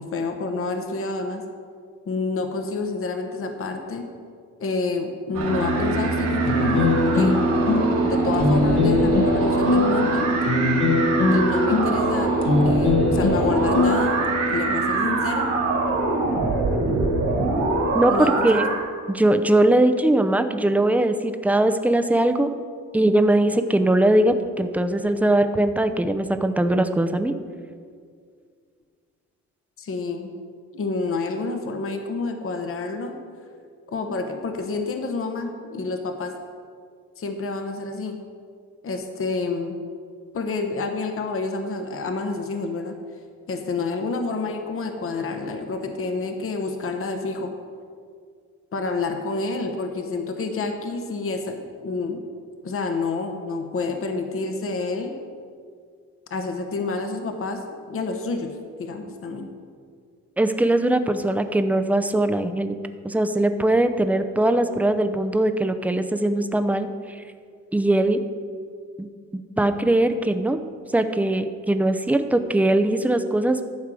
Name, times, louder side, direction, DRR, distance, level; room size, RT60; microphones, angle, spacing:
voice 1, 0.0-1.4 2.1-4.1 4.6-7.4 8.0-10.3 11.3-14.2 14.5-15.5 18.1-18.6 29.8-30.3 30.7-33.2 33.9-36.3 37.2-38.2 38.8-39.8 40.3-42.9 43.5-47.5 48.7-52.2 52.6-55.1 56.3-58.5 58.8-59.5, left 3 dB, 45° left, 5 dB, 1.1 m, -28 dB
sound 1, 5.3-18.8, right 3 dB, 80° right, 2.8 m, -23 dB
sound 2, 6.5-14.6, left 3 dB, 65° left, 1.5 m, -22 dB
voice 2, 17.9-18.7 19.1-22.5 22.9-27.3 60.4-62.8 63.0-67.2 67.7-68.2 69.0-69.1 69.3-70.6 70.9-73.6, right 1 dB, 5° right, 8 dB, 0.6 m, -21 dB
11.5 x 4.6 x 7.6 m, 2.1 s
cardioid pair, 90°, 30 cm